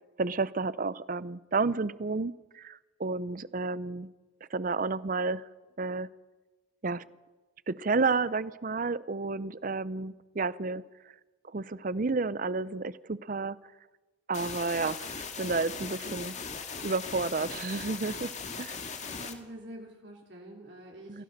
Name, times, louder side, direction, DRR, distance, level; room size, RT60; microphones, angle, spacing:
voice 1, 0.2-4.1 4.5-5.4 5.8-6.1 6.8-7.1 7.7-10.8 11.4-13.6 14.3-16.3 16.8-18.3 18.6-18.8 21.1-21.2, right 3 dB, 45° right, 18 dB, 0.6 m, -31 dB
sound 1, 14.3-19.3, left 5 dB, 40° left, 2.0 m, -39 dB
voice 2, 18.9-21.2, right 1 dB, 65° right, -1 dB, 3.3 m, -46 dB
28.0 x 16.5 x 6.6 m, 1.2 s
head